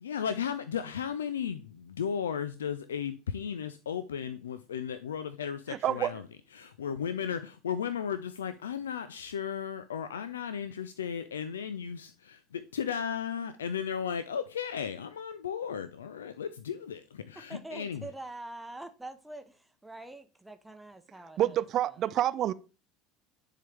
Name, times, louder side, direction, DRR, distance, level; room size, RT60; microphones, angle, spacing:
voice 1, 0.0-6.2 6.5-18.0, left 8 dB, 75° left, 0.3 m, -35 dB
voice 2, 5.7-6.2 21.4-22.5, right 12 dB, 45° right, 0.4 m, -28 dB
voice 3, 17.5-21.6 21.9-22.0, right 2 dB, 5° right, 0.7 m, -45 dB
10.0 x 3.8 x 3.4 m
figure-of-eight pair, 70°, 0 cm